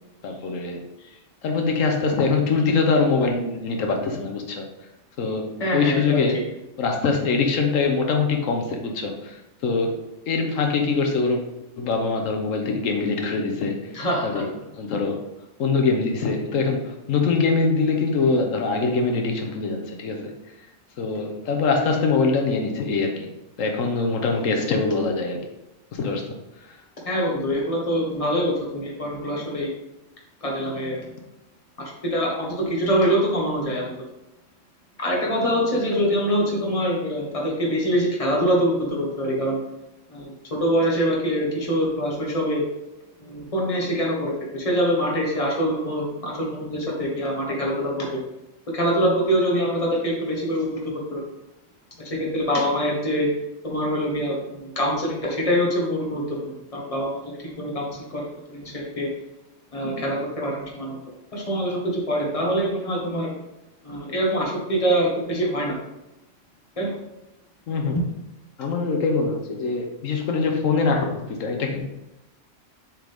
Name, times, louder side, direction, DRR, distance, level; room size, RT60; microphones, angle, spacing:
voice 1, 0.2-0.8 1.4-4.7 5.2-6.5 6.8-10.0 10.3-11.4 11.8-13.9 14.2-14.5 14.8-15.2 15.6-20.3 21.0-23.3 23.6-25.4 25.9-26.3 67.7-68.0 68.6-71.8, left 4 dB, 90° left, 3 dB, 1.2 m, -23 dB
voice 2, 5.6-6.2 13.9-14.4 27.0-29.7 30.4-31.0 31.8-33.9 35.0-39.6 40.1-42.6 43.2-48.2 48.7-51.2 52.0-53.3 53.6-59.1 59.7-61.0 61.3-63.3 63.8-65.8 66.8-67.0, equal, 30° left, -2 dB, 1.4 m, -24 dB
7.2 x 3.8 x 3.5 m, 0.95 s
omnidirectional pair, 1.3 m